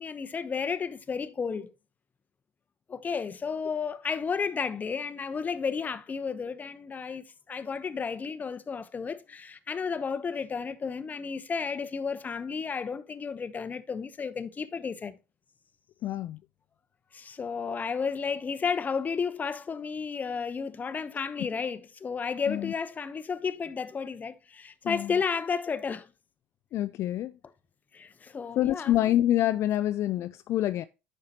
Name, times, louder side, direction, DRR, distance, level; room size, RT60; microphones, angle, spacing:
voice 1, 0.0-1.7 2.9-15.2 17.1-26.1 27.9-28.9, left 5 dB, 30° left, 0.8 m, -32 dB
voice 2, 16.0-16.4 22.5-22.7 24.8-25.1 26.7-27.3 28.6-30.9, left 13 dB, 55° left, 0.4 m, -26 dB
9.5 x 6.5 x 2.9 m
hypercardioid pair, 75°, 6 cm